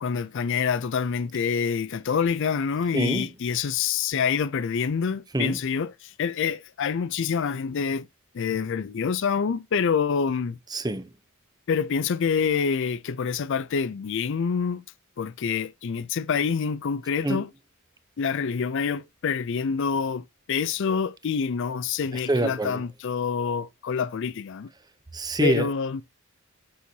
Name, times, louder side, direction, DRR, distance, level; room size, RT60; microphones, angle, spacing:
voice 1, 0.0-8.1 8.3-10.6 11.7-14.8 15.2-17.5 18.2-24.7 25.4-26.0, left 6 dB, 60° left, 0.4 m, -26 dB
voice 2, 2.9-3.3 5.3-5.6 10.7-11.1 17.2-17.4 22.3-22.8 25.1-25.7, right 2 dB, 20° right, 0.7 m, -25 dB
8.4 x 6.2 x 2.7 m
head